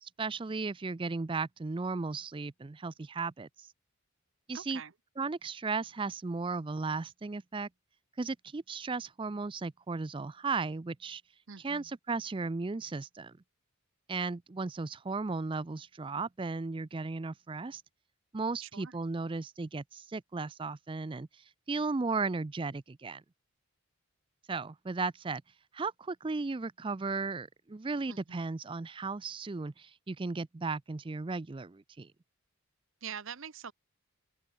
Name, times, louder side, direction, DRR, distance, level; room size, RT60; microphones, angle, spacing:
voice 1, 0.0-3.7 4.5-4.8 5.2-7.7 8.2-11.2 11.6-13.3 14.1-17.8 18.3-23.2 24.5-25.4 25.7-32.1, right 4 dB, 20° right, 0.4 m, -35 dB
voice 2, 4.5-4.9 11.5-11.9 18.6-19.0 28.1-28.5 33.0-33.7, right 7 dB, 60° right, 0.8 m, -44 dB
open air
head